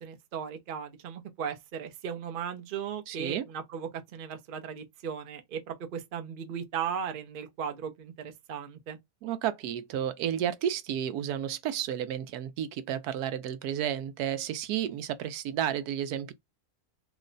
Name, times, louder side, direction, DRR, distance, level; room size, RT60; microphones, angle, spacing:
voice 1, 0.0-9.0, right 7 dB, 50° right, 0.6 m, -37 dB
voice 2, 3.1-3.4 9.2-16.3, right 10 dB, 85° right, 1.1 m, -32 dB
3.1 x 2.1 x 3.7 m
omnidirectional pair, 1.6 m